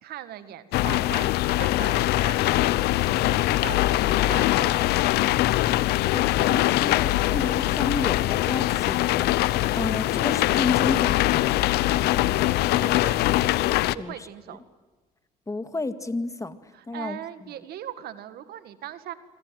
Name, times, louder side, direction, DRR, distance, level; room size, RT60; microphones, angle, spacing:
voice 1, 0.0-1.3 1.6-2.7 3.0-4.7 12.2-12.5 12.8-13.2 13.9-14.6 16.7-19.1, right 11 dB, 75° right, 12 dB, 1.9 m, -39 dB
sound 1, 0.7-13.9, left 16 dB, 80° left, 0.8 m, -22 dB
voice 2, 6.1-11.6 14.0-14.3 15.5-16.6 16.9-17.2, left 2 dB, 20° left, 11 dB, 2.0 m, -32 dB
26.0 x 25.5 x 7.7 m, 1.3 s
cardioid pair, 85°, 16 cm